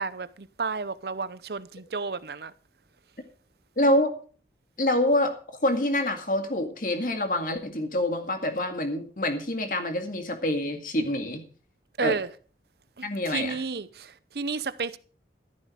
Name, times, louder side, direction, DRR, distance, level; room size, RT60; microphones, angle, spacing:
voice 1, 0.0-2.5 12.0-12.3 13.0-15.0, right 4 dB, 65° right, 0.7 m, -32 dB
voice 2, 3.8-4.1 4.8-5.3 5.6-11.4 12.0-12.2 13.0-13.6, left 1 dB, 50° left, 2.1 m, -26 dB
12.5 x 11.0 x 4.9 m
head